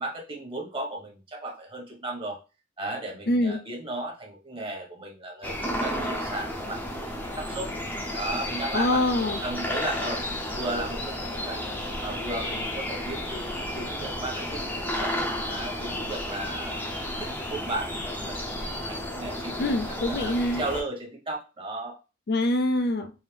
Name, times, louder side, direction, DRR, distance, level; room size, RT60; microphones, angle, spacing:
voice 1, 0.0-2.4 2.8-7.7 8.1-9.0 9.4-10.2 10.5-11.6 12.0-22.0, right 2 dB, 25° right, -1 dB, 1.4 m, -35 dB
voice 2, 3.3-3.6 8.7-9.4 19.6-20.6 22.3-23.1, left 1 dB, 50° left, 6 dB, 0.5 m, -24 dB
sound 1, 5.4-20.8, left 1 dB, 10° left, 0.8 m, -32 dB
4.6 x 2.8 x 3.4 m, 0.30 s
head